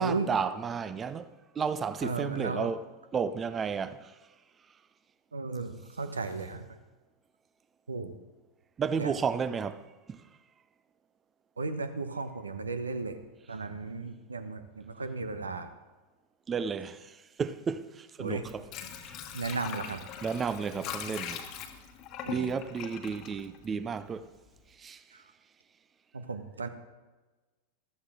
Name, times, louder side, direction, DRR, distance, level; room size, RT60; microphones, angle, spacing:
voice 1, 0.0-2.8 3.1-4.2 8.8-10.2 16.5-18.7 19.1-19.2 19.5-19.6 20.2-21.4 22.3-24.3 24.8-25.0, right 6 dB, 20° right, 0.6 m, -33 dB
voice 2, 2.0-2.7 5.3-6.6 7.9-8.1 9.0-9.2 11.6-13.2 13.5-15.7 18.2-18.4 19.3-20.0 22.2-22.5 26.1-26.7, right 3 dB, 75° right, 1.0 m, -35 dB
Water / Sink (filling or washing), 18.3-24.2 24.6-24.7, left 8 dB, 35° left, 1.3 m, -41 dB
14.5 x 13.5 x 3.7 m
figure-of-eight pair, 90°, 0 cm